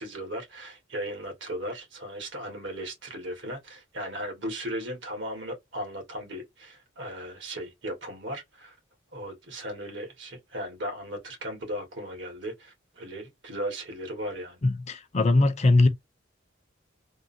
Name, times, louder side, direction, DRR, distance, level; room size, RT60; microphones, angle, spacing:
voice 1, 0.0-8.8 9.1-14.6, equal, 70° right, 1.5 m, -36 dB
voice 2, 14.6-15.9, left 2 dB, 35° left, 0.5 m, -21 dB
3.6 x 2.1 x 2.6 m
head